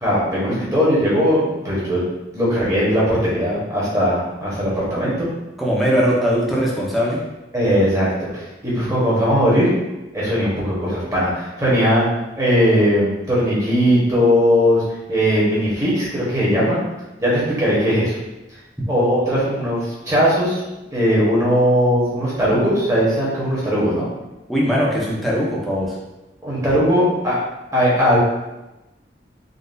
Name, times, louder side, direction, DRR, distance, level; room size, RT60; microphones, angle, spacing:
voice 1, 0.0-2.0 2.3-5.3 7.5-9.7 10.1-12.0 12.3-14.8 15.1-16.8 17.2-18.2 18.9-20.6 20.9-24.1 26.4-27.3 27.7-28.2, equal, 20° right, -8 dB, 1.0 m, -19 dB
voice 2, 5.6-7.2 24.5-25.9, equal, ahead, -6 dB, 0.6 m, -20 dB
3.8 x 2.4 x 2.5 m, 1.0 s
head